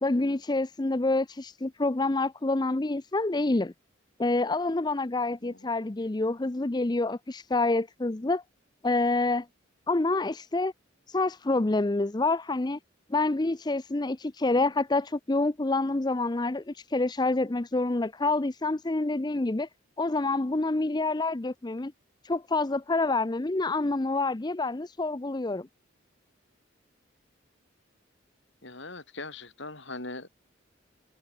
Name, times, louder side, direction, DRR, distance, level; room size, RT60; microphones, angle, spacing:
voice 1, 0.0-3.7 4.2-8.4 8.8-9.5 9.9-10.7 11.1-12.8 13.1-19.7 20.0-21.9 22.2-25.7, left 2 dB, 20° left, 0.5 m, -27 dB
voice 2, 28.6-30.3, left 2 dB, 60° left, 5.5 m, -40 dB
head